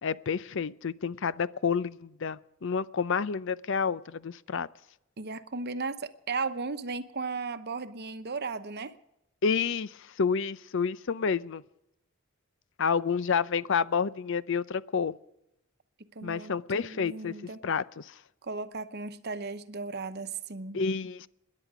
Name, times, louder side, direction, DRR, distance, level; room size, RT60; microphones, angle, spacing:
voice 1, 0.0-4.7 9.4-11.6 12.8-15.1 16.2-17.3 17.6-18.1 20.7-21.3, left 6 dB, 60° left, 0.5 m, -29 dB
voice 2, 5.2-8.9 16.1-17.6 18.4-20.8, right 4 dB, 50° right, 1.0 m, -36 dB
27.0 x 11.0 x 4.9 m
head